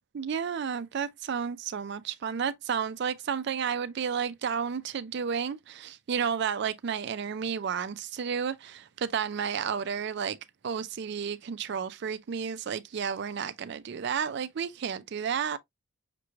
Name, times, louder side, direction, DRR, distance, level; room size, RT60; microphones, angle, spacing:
voice 1, 0.1-10.4 10.6-15.6, right 7 dB, 55° right, 0.4 m, -32 dB
5.9 x 3.1 x 2.3 m
head